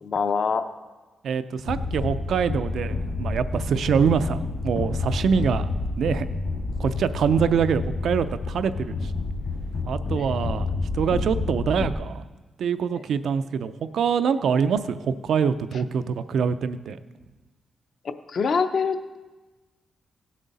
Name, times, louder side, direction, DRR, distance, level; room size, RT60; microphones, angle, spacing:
voice 1, 0.0-0.7 10.2-10.3 12.9-13.0 18.3-19.2, left 5 dB, 50° left, 9 dB, 0.5 m, -25 dB
voice 2, 1.2-4.4 4.6-5.7 6.0-6.3 6.8-9.1 9.9-10.7 10.9-12.2 12.6-17.0, right 6 dB, 75° right, 12 dB, 0.4 m, -24 dB
sound 1, 1.7-11.9, left 3 dB, 65° left, 1.7 m, -29 dB
17.0 x 7.5 x 4.1 m, 1.2 s
wide cardioid pair, 155°, 0 cm